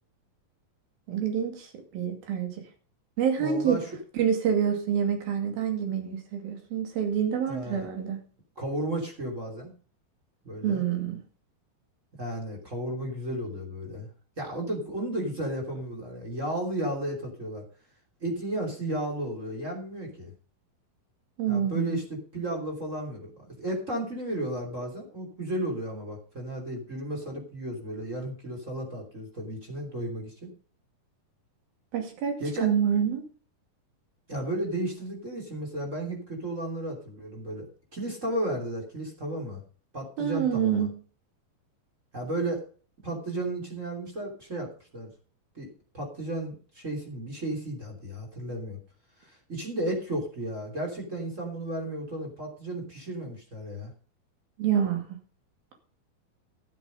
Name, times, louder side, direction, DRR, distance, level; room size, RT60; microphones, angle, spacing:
voice 1, 1.1-1.7 1.9-2.5 3.2-3.8 4.1-8.2 10.6-11.2 21.4-22.0 31.9-33.3 40.2-40.9 54.6-55.0, right 8 dB, 75° right, 4 dB, 4.2 m, -27 dB
voice 2, 3.4-3.8 7.5-7.9 8.6-9.7 10.4-10.8 12.2-14.1 14.4-17.6 18.2-20.3 21.5-30.5 32.4-32.7 34.3-39.6 39.9-40.9 42.1-42.6 43.0-45.1 45.5-45.7 45.9-48.8 49.2-53.9, right 1 dB, 20° right, 0 dB, 3.0 m, -33 dB
12.5 x 7.6 x 5.2 m, 0.40 s
omnidirectional pair, 4.3 m